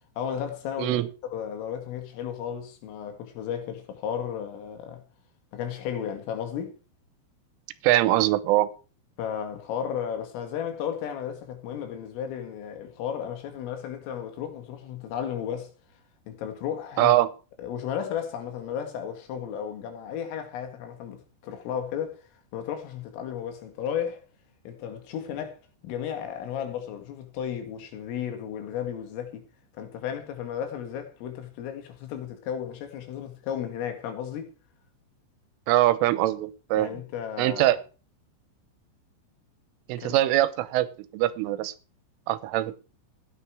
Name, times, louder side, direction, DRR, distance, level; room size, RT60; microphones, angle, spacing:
voice 1, 0.2-1.0 1.3-5.0 5.5-6.8 9.2-15.7 16.3-17.2 17.6-22.2 22.5-24.2 24.7-29.4 29.8-34.5 36.8-37.8 40.0-40.2, left 8 dB, 85° left, 4.8 m, -34 dB
voice 2, 7.8-8.7 17.0-17.3 35.7-37.0 37.4-37.8 39.9-40.9 41.1-41.7 42.3-42.8, right 15 dB, 85° right, 3.3 m, -22 dB
14.5 x 9.6 x 4.8 m
omnidirectional pair, 5.7 m